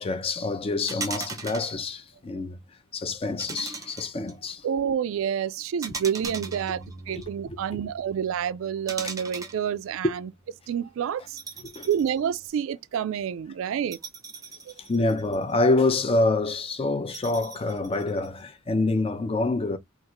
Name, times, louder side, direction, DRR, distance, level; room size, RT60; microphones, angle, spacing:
voice 1, 0.0-2.6 2.9-4.7 7.2-7.6 11.6-11.9 14.8-19.8, left 2 dB, 25° left, 0.4 m, -26 dB
sound 1, 0.9-1.7 3.4-4.3 5.8-7.3 8.9-9.6 11.4-12.1 12.5-12.6 13.9-15.5 17.1-18.3, right 4 dB, 15° right, 0.5 m, -38 dB
voice 2, 4.6-10.3 10.7-11.4 11.9-14.0 14.7-14.8, right 8 dB, 65° right, 0.3 m, -28 dB
Bass guitar, 6.2-10.7 11.3-12.5, right 2 dB, 75° left, 1.0 m, -48 dB
3.5 x 2.4 x 2.9 m
head